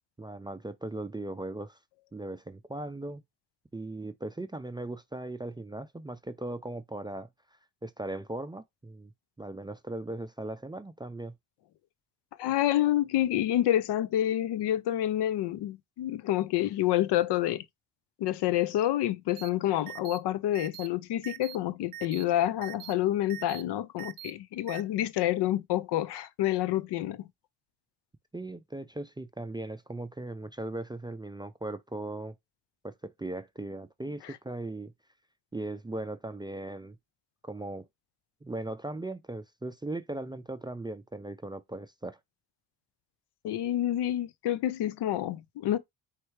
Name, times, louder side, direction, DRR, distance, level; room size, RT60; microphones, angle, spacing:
voice 1, 0.2-1.8 2.1-3.2 3.7-7.3 7.8-9.1 9.4-11.3 28.3-32.3 32.8-34.9 35.5-37.0 37.4-37.9 38.4-42.2, right 2 dB, 10° right, 0.4 m, -38 dB
voice 2, 12.4-17.6 18.2-27.2 34.2-34.3 43.4-45.8, left 13 dB, 70° left, 0.5 m, -28 dB
sound 1, 19.4-19.5 19.9-20.2 20.5-20.9 21.2-21.6 21.9-22.2 22.6-22.9 23.3-23.6 24.0-24.3 24.7-24.8, right 13 dB, 50° right, 0.6 m, -42 dB
4.5 x 3.3 x 3.1 m
supercardioid pair, 70°, 43 cm